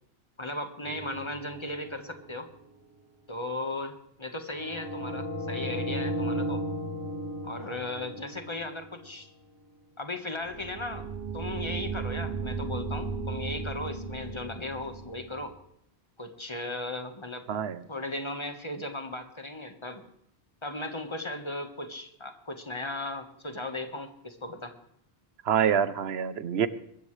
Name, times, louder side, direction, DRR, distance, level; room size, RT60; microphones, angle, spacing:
voice 1, 0.4-2.5 3.3-6.7 7.4-9.3 10.0-11.1 11.3-15.6 16.2-17.4 17.9-20.0 20.6-24.7, left 2 dB, 25° left, 6 dB, 1.5 m, -36 dB
sound 1, 0.8-2.3 4.6-9.0 10.4-15.4, right 2 dB, 60° right, 3.7 m, -35 dB
voice 2, 17.5-17.8 25.4-26.7, right 8 dB, 85° right, 14 dB, 1.1 m, -26 dB
23.5 x 13.5 x 3.3 m, 0.74 s
omnidirectional pair, 1.1 m